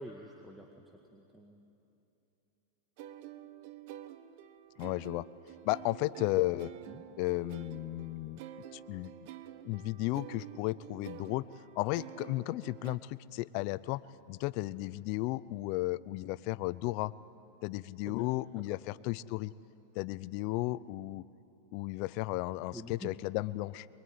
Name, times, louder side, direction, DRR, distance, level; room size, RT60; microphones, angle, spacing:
voice 1, 0.0-1.6 6.9-7.0 18.1-18.3 18.6-18.8 22.7-23.2, equal, 5° right, 1 dB, 1.9 m, -48 dB
sound 1, 3.0-13.0, right 11 dB, 55° right, 1.1 m, -49 dB
voice 2, 4.8-5.3 5.6-6.7 7.2-8.4 8.7-9.1 9.6-11.5 11.8-14.0 14.3-17.1 17.6-19.5 19.9-21.2 21.7-23.9, left 19 dB, 50° left, 18 dB, 0.6 m, -34 dB
24.0 x 22.5 x 9.6 m, 2.8 s
hypercardioid pair, 125°, 0 cm